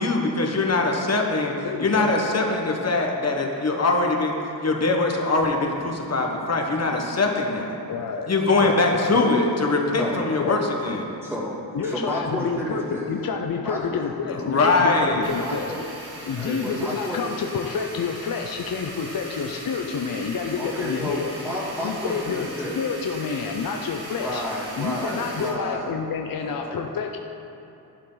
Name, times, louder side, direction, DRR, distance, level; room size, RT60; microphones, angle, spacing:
voice 1, 0.0-1.5 1.8-4.3 4.6-7.8 8.3-11.1 14.3-15.3, left 3 dB, 40° left, 1 dB, 1.4 m, -22 dB
voice 2, 1.6-2.1 7.9-8.3 8.6-9.3 10.4-10.6 11.7-15.7 16.2-21.3 21.8-22.5 22.7-24.4 24.8-27.2, left 5 dB, 60° left, 3 dB, 0.7 m, -28 dB
voice 3, 11.2-13.1 13.6-14.0 15.4-15.8 16.4-17.2 20.6-22.8 24.2-25.9 26.4-26.8, equal, 5° right, -7 dB, 2.7 m, -31 dB
sound 1, 15.2-25.5, right 1 dB, 85° right, 2.5 m, -39 dB
14.5 x 11.5 x 4.0 m, 2.9 s
wide cardioid pair, 160°, 39 cm